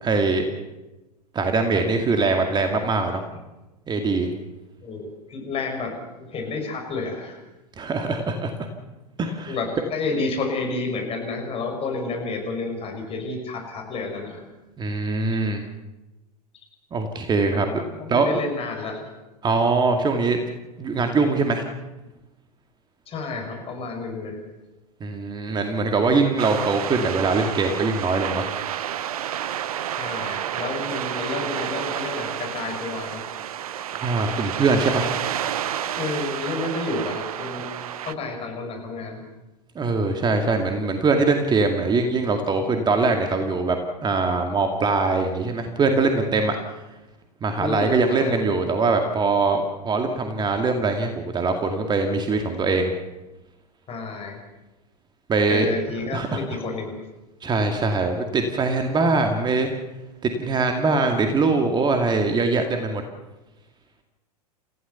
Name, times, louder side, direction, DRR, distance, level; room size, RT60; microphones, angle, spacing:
voice 1, 0.0-0.5 1.3-3.2 3.9-4.3 7.8-8.5 9.2-9.6 14.8-15.6 16.9-17.8 18.1-18.4 19.4-20.4 20.8-21.7 25.0-28.5 34.0-35.1 39.8-46.6 47.4-52.9 55.3-55.7 56.1-56.4 57.4-59.7 60.2-63.0, right 3 dB, 20° right, 5 dB, 2.2 m, -22 dB
voice 2, 4.8-7.4 9.5-14.4 17.5-19.1 23.1-24.4 29.9-33.2 36.0-37.7 38.0-39.2 47.5-48.4 53.9-54.4 55.5-56.9, left 3 dB, 30° left, 3 dB, 6.5 m, -30 dB
sound 1, 26.4-38.1, right 10 dB, 65° right, 1.0 m, -30 dB
28.5 x 16.0 x 7.0 m, 1.0 s
figure-of-eight pair, 90°, 20 cm